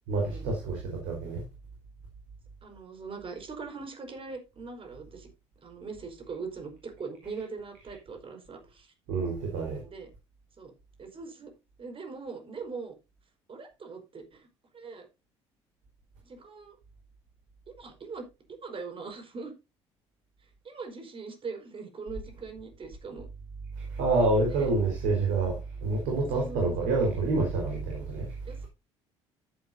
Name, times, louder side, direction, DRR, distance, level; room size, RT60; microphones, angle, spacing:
voice 1, 0.1-1.4 9.1-9.8 24.0-28.3, right 3 dB, 65° right, 4.4 m, -27 dB
voice 2, 2.6-5.3 5.6-8.9 9.8-10.1 10.6-10.7 11.0-11.5 11.8-12.9 13.5-14.5 14.7-15.1 16.2-16.7 17.7-18.3 18.6-19.5 20.6-23.3 24.4-24.7 26.2-26.9 28.4-28.7, right 4 dB, 40° right, 4.8 m, -41 dB
14.0 x 8.4 x 2.8 m
hypercardioid pair, 55°, 15 cm